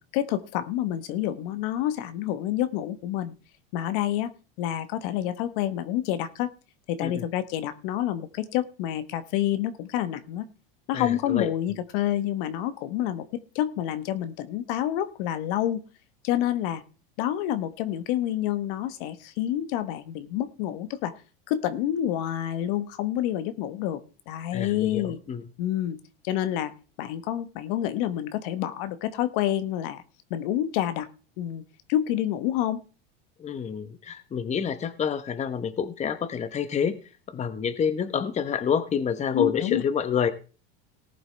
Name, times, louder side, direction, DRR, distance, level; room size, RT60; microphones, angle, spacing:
voice 1, 0.1-3.3 3.7-4.3 4.6-6.5 6.9-10.5 10.9-15.8 16.2-16.8 17.2-21.1 21.5-25.2 25.6-26.0 26.2-26.7 27.0-30.0 30.3-31.1 31.4-31.6 31.9-32.8 39.3-39.8, left 12 dB, 65° left, 12 dB, 1.1 m, -28 dB
voice 2, 10.9-11.5 24.5-25.4 33.4-37.0 37.3-40.3, left 7 dB, 25° left, 11 dB, 0.9 m, -28 dB
18.5 x 7.9 x 3.3 m, 0.36 s
supercardioid pair, 110°, 29 cm